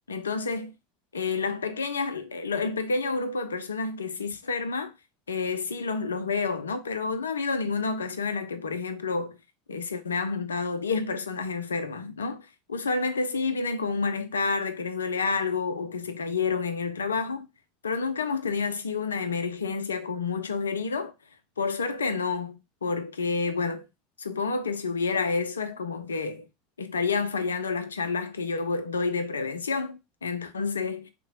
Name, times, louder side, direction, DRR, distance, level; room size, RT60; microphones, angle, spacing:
voice 1, 0.1-0.7 1.1-4.9 5.3-9.4 9.7-17.5 17.8-21.1 21.6-23.9 24.2-26.5 26.8-31.1, left 4 dB, 80° left, 0.3 m, -29 dB
2.8 x 2.1 x 2.7 m
figure-of-eight pair, 80°, 0 cm